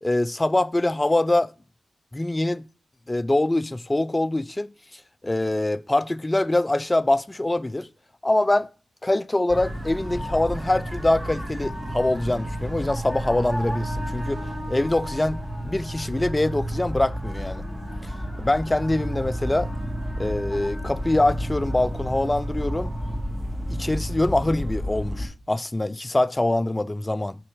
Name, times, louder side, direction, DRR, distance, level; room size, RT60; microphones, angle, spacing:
voice 1, 0.0-1.5 2.1-2.6 3.1-4.7 5.2-7.9 8.2-8.7 9.0-14.4 14.7-17.6 18.4-19.7 20.2-22.9 23.7-27.4, left 1 dB, 20° left, 0.3 m, -24 dB
sound 1, 9.5-25.3, equal, 15° right, 2.2 m, -31 dB
6.3 x 4.3 x 4.8 m
cardioid pair, 55°, 0 cm